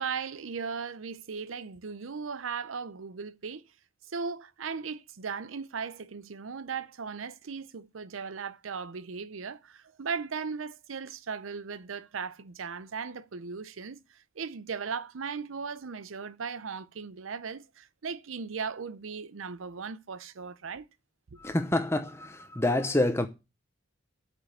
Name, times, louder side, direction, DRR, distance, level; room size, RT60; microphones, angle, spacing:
voice 1, 0.0-3.6 4.1-14.0 14.4-20.9 21.3-21.4, right 5 dB, 85° right, 0.7 m, -37 dB
voice 2, 21.4-23.3, left 1 dB, 15° left, 0.7 m, -27 dB
8.4 x 5.4 x 7.9 m
head